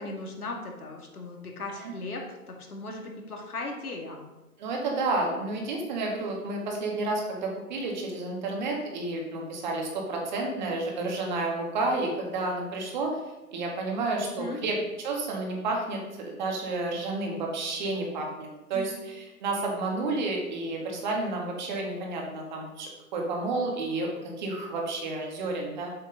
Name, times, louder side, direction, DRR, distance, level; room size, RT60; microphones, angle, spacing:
voice 1, 0.0-4.2 14.3-14.6 18.7-18.9, left 2 dB, 75° left, 1 dB, 2.4 m, -37 dB
voice 2, 4.6-13.2 13.5-24.1 24.4-25.9, right 2 dB, 30° right, 0 dB, 1.9 m, -31 dB
7.6 x 6.4 x 5.3 m, 1.1 s
hypercardioid pair, 155°, 45 cm